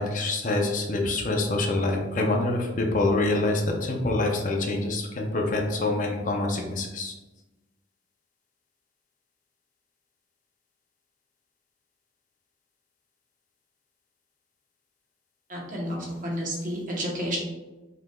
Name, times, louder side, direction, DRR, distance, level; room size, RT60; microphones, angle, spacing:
voice 1, 0.0-7.1, left 2 dB, 40° left, 1 dB, 0.5 m, -26 dB
voice 2, 15.5-17.4, equal, 40° right, -2 dB, 0.9 m, -31 dB
5.7 x 3.3 x 2.2 m, 1.1 s
head